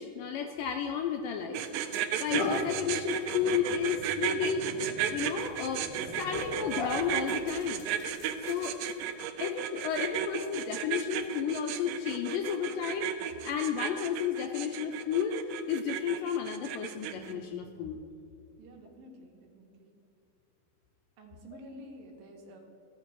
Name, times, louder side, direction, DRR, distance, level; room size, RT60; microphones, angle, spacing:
voice 1, 0.0-4.7 5.1-7.9 8.5-8.8 9.4-13.1 13.4-15.4 15.7-18.0, left 8 dB, 85° left, 4 dB, 1.9 m, -32 dB
sound 1, 1.0-1.2 1.7-9.1, left 2 dB, 60° left, 1.4 m, -40 dB
sound 2, 1.5-17.3, right 10 dB, 85° right, 1.9 m, -34 dB
voice 2, 18.6-19.9 21.2-22.6, equal, 70° right, 1 dB, 2.7 m, -50 dB
14.5 x 5.8 x 4.6 m, 2.6 s
omnidirectional pair, 4.5 m